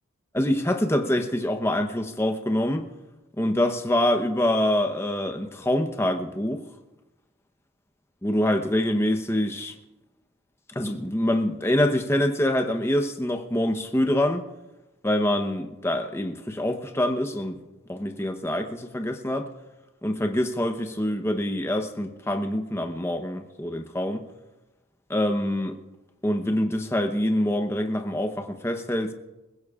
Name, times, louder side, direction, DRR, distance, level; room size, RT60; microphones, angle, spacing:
voice 1, 0.3-2.9 3.4-6.6 8.2-9.7 10.7-14.4 15.0-17.6 17.9-19.5 20.0-24.2 25.1-25.8 26.2-29.1, left 1 dB, 10° left, 5 dB, 0.9 m, -25 dB
29.0 x 16.0 x 2.5 m, 1.1 s
head